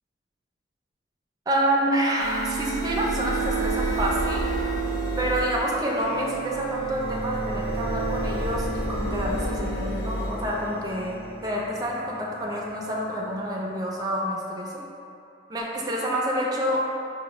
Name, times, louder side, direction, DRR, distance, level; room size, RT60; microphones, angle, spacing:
voice 1, 1.5-4.4 5.2-14.8 15.5-16.8, equal, 20° right, -3 dB, 0.4 m, -28 dB
sound 1, 2.2-13.8, right 2 dB, 55° left, 0.7 m, -30 dB
4.8 x 2.1 x 2.9 m, 2.6 s
head